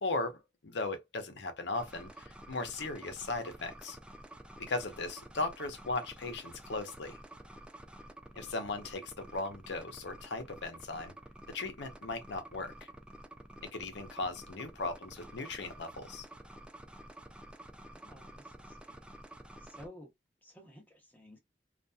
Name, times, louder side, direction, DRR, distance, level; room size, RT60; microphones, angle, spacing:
voice 1, 0.0-4.0 4.6-7.1 8.3-11.1 11.5-12.9 13.6-16.3, left 3 dB, 70° left, 0.7 m, -37 dB
sound 1, 1.7-19.9, right 1 dB, 5° right, 0.3 m, -50 dB
voice 2, 17.6-19.0 19.6-20.1 20.4-21.4, equal, 10° left, 0.7 m, -54 dB
2.7 x 2.4 x 2.2 m
head